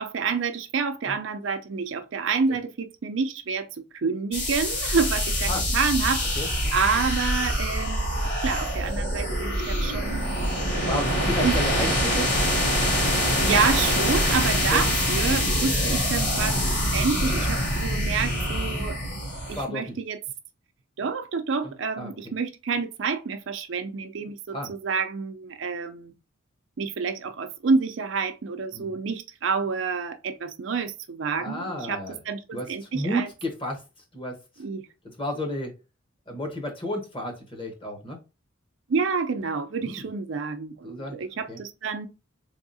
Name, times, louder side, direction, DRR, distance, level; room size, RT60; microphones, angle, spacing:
voice 1, 0.0-3.7 3.9-6.3 6.7-10.3 10.7-11.0 11.4-12.2 13.4-19.0 19.5-20.2 21.0-26.1 26.8-33.3 34.6-34.9 38.9-42.1, right 5 dB, 60° right, 0.5 m, -28 dB
sound 1, 4.3-19.6, equal, 55° left, 2.0 m, -25 dB
voice 2, 6.4-6.7 10.7-12.3 14.7-14.8 18.6-18.9 19.6-19.9 21.6-22.1 24.5-24.7 28.7-28.9 31.4-32.2 32.5-33.8 34.1-34.4 35.2-35.7 36.3-38.2 39.8-40.0 40.8-41.2 41.5-41.6, equal, 25° left, 1.1 m, -32 dB
3.9 x 3.5 x 2.7 m
head